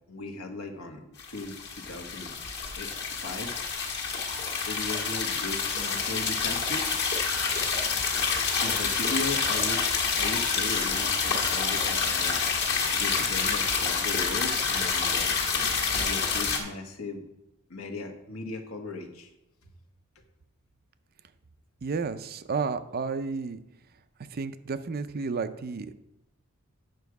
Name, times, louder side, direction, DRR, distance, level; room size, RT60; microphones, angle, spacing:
voice 1, 0.1-2.3 2.8-2.9 3.2-3.5 4.7-7.0 8.6-9.9 10.1-12.4 12.9-15.2 15.9-17.3 17.7-19.3, left 2 dB, 70° left, 5 dB, 1.2 m, -37 dB
sound 1, 1.2-16.6, left 5 dB, 55° left, 1.6 m, -28 dB
voice 2, 21.8-23.6 24.3-26.0, right 4 dB, 45° right, 11 dB, 0.5 m, -32 dB
9.1 x 6.2 x 4.7 m, 0.89 s
head